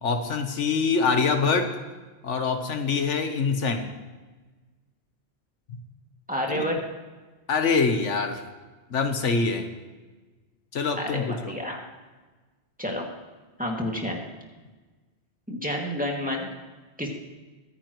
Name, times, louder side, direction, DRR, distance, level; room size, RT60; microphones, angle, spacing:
voice 1, 0.0-1.7 2.2-3.9 6.5-6.7 7.5-8.4 8.9-9.7 10.7-11.3, left 4 dB, 85° left, 6 dB, 1.5 m, -24 dB
voice 2, 6.3-6.8 11.0-11.8 12.8-13.1 13.6-14.2 15.5-16.5 17.0-17.1, equal, 5° right, -1 dB, 2.3 m, -29 dB
24.0 x 9.9 x 3.1 m, 1.3 s
omnidirectional pair, 1.2 m